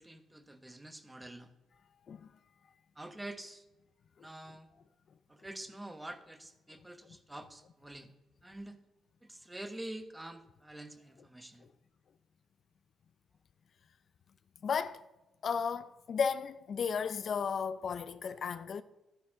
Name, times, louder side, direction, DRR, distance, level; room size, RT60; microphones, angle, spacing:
voice 1, 0.0-1.5 2.9-3.7 4.2-4.7 5.3-8.1 8.4-8.8 9.2-11.7, right 1 dB, 10° right, 1.0 m, -47 dB
voice 2, 14.6-15.0 15.4-18.8, left 6 dB, 55° left, 0.4 m, -34 dB
12.0 x 10.0 x 3.7 m
cardioid pair, 90°, 0 cm